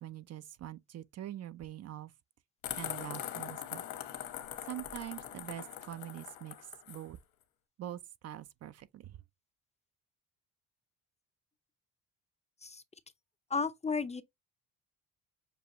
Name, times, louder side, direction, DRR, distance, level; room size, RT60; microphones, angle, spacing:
voice 1, 0.0-2.1 2.8-3.8 4.6-7.2 7.8-9.2, right 12 dB, 45° right, 0.5 m, -44 dB
sound 1, 2.6-7.0, left 12 dB, 75° left, 1.2 m, -42 dB
voice 2, 13.5-14.2, left 4 dB, 20° left, 0.5 m, -33 dB
6.9 x 2.4 x 2.9 m
supercardioid pair, 85°, 35 cm